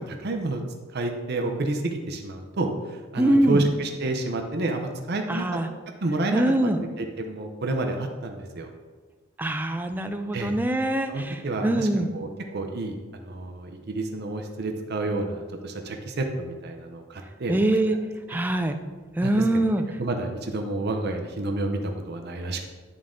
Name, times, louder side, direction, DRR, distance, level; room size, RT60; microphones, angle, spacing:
voice 1, 0.1-0.6 0.9-5.5 6.0-6.4 7.0-8.7 10.3-10.5 11.1-11.9 12.1-17.6 18.3-18.4 19.2-19.4 20.0-22.7, right 2 dB, 50° right, 4 dB, 0.7 m, -29 dB
voice 2, 3.2-3.7 5.3-5.7 6.3-6.8 9.4-12.1 17.5-18.0 18.3-18.8 19.2-19.8, right 1 dB, 10° right, 6 dB, 0.4 m, -23 dB
11.0 x 3.7 x 3.7 m, 1.4 s
head